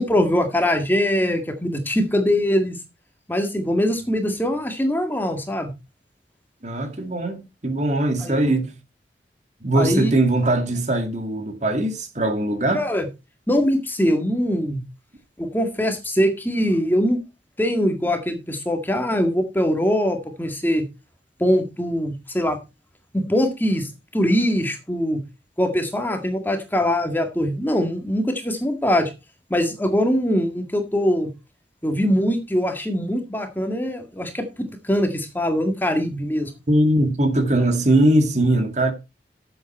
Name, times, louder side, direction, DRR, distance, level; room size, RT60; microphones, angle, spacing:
voice 1, 0.0-2.8 3.3-5.7 8.2-8.3 9.8-10.1 12.7-13.1 13.5-14.8 15.4-17.2 17.6-20.8 21.4-22.6 23.1-25.2 25.6-29.1 29.5-31.3 31.8-36.5, equal, 10° left, 1.9 m, -22 dB
voice 2, 6.6-8.7 9.6-12.8 36.7-38.9, right 1 dB, 40° right, 2.1 m, -20 dB
12.5 x 8.0 x 4.3 m
head